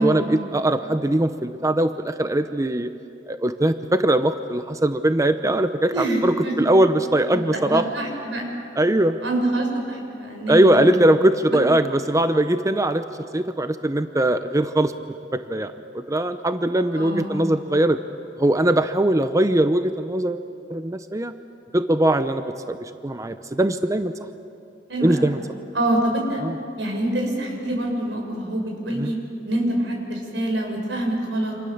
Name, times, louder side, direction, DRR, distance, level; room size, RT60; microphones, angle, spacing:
voice 1, 0.0-2.9 3.3-7.8 8.8-9.2 10.5-13.0 13.3-14.9 15.3-18.0 18.4-20.4 20.7-21.3 21.7-24.1 25.0-25.4 26.4-26.5 28.9-29.1, right 1 dB, 20° right, 9 dB, 0.7 m, -21 dB
voice 2, 5.9-6.7 7.3-8.5 9.2-10.9 11.5-11.6 16.9-17.4 24.9-25.4 25.7-26.4 26.8-29.2 29.4-31.5, right 1 dB, 85° right, 1 dB, 6.5 m, -26 dB
29.0 x 27.0 x 7.2 m, 2.6 s
head